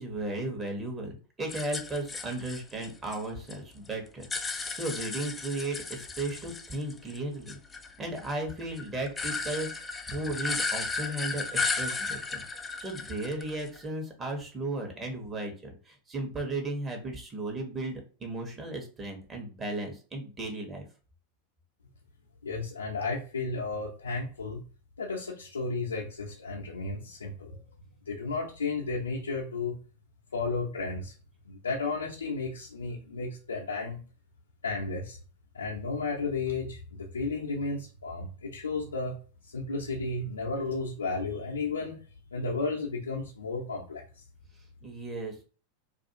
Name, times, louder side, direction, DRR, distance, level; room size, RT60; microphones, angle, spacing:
voice 1, 0.0-7.6 8.0-9.7 10.1-12.4 12.8-17.9 18.2-20.8 44.8-45.3, right 2 dB, 25° right, 1 dB, 0.9 m, -35 dB
sound 1, 1.5-3.6 3.9-7.2 7.5-13.8, left 4 dB, 15° left, 0.4 m, -35 dB
voice 2, 22.4-24.6 25.0-27.6 28.0-29.8 30.3-31.1 31.4-34.0 34.6-35.2 35.5-39.1 39.4-42.0 42.3-44.2, left 3 dB, 85° left, -3 dB, 0.6 m, -33 dB
2.4 x 2.3 x 2.7 m, 0.38 s
hypercardioid pair, 90°, 0 cm